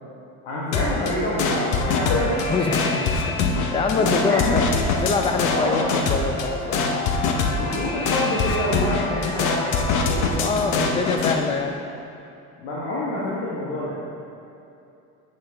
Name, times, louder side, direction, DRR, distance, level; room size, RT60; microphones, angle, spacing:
voice 1, 0.4-3.1 4.0-4.6 5.5-5.8 7.5-11.2 12.6-14.0, left 1 dB, 85° left, -7 dB, 1.4 m, -27 dB
sound 1, 0.7-11.4, left 4 dB, 55° left, 0.9 m, -24 dB
voice 2, 2.5-3.1 3.4-4.7 5.0-6.9 10.4-11.8, left 4 dB, 15° left, 5 dB, 0.5 m, -25 dB
9.0 x 6.1 x 3.5 m, 2.7 s
supercardioid pair, 90°, 36 cm